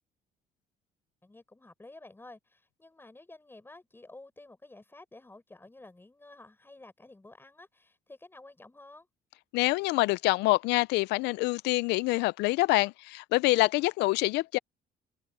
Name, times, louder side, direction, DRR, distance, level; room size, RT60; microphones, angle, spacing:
voice 1, 1.2-9.1, left 2 dB, 15° left, 7.2 m, -52 dB
voice 2, 9.5-14.6, left 20 dB, 85° left, 0.4 m, -26 dB
open air
cardioid pair, 110°, 17 cm